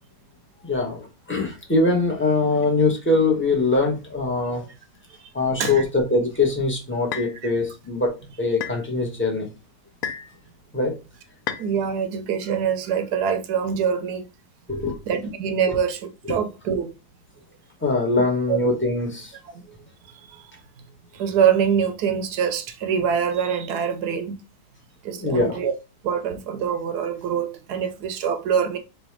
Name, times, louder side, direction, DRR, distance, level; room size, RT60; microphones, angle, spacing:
voice 1, 0.6-4.7 5.3-9.5 10.7-10.9 14.7-15.0 15.6-15.8 16.2-16.4 17.8-19.3 25.1-25.7, left 3 dB, 10° left, 0.7 m, -23 dB
sound 1, 5.7-5.8 7.1-7.4 8.6-8.8 10.0-10.3 11.5-11.7, left 8 dB, 65° left, 0.9 m, -31 dB
voice 2, 11.6-14.3 15.1-16.0 16.3-16.9 18.5-18.6 19.5-19.8 20.1-20.5 21.1-24.4 25.0-25.7 26.0-28.8, right 7 dB, 75° right, 1.1 m, -24 dB
3.2 x 2.6 x 4.4 m
omnidirectional pair, 1.8 m